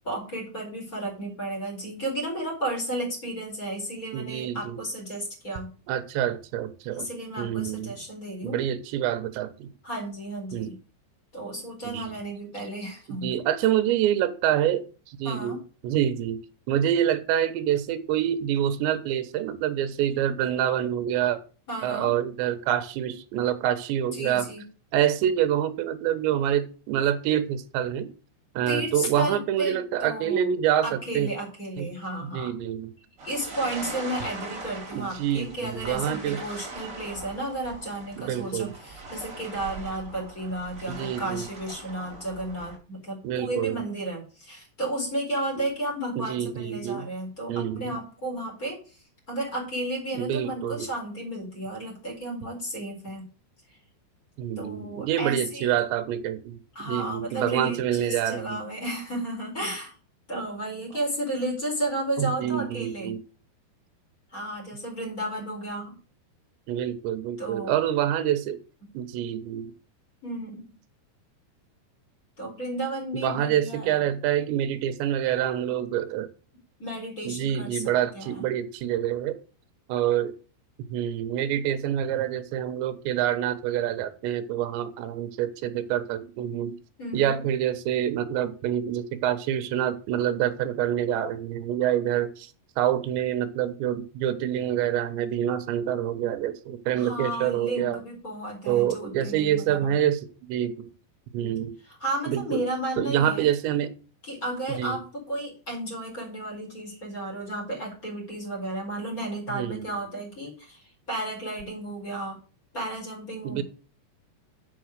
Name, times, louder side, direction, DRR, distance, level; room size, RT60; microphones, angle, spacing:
voice 1, 0.0-5.7 6.9-8.6 9.8-10.8 11.3-13.3 15.2-15.6 21.7-22.1 24.1-24.6 28.7-30.5 30.8-32.5 33.2-49.0 49.3-53.3 54.6-55.7 56.7-59.9 60.3-63.2 64.3-66.0 67.4-67.8 70.2-70.7 72.4-74.0 76.8-77.8 78.1-78.5 87.0-87.5 97.0-100.0 101.8-103.5 104.2-112.4 112.7-113.6, right 1 dB, 20° left, -1 dB, 4.5 m, -33 dB
voice 2, 4.1-4.8 5.9-7.1 7.4-8.0 8.4-9.7 10.5-10.7 11.8-12.1 13.1-16.4 16.7-21.4 21.8-24.5 24.9-28.1 28.6-31.3 31.8-31.9 32.3-32.9 34.9-36.4 38.2-38.7 40.9-41.4 43.2-43.8 46.2-47.1 47.5-48.0 50.1-50.9 54.4-58.6 62.2-63.2 66.7-68.6 68.9-69.7 73.1-76.3 77.2-79.4 79.9-80.3 80.9-86.8 87.1-92.5 92.8-98.0 98.7-100.9 101.3-101.7 102.3-102.6 103.0-103.9 104.8-105.0 109.5-109.9 113.4-113.6, right 11 dB, 85° right, 10 dB, 3.2 m, -26 dB
sound 1, 33.2-42.8, right 3 dB, 30° right, 2.8 m, -41 dB
7.5 x 6.9 x 6.5 m, 0.38 s
omnidirectional pair, 5.0 m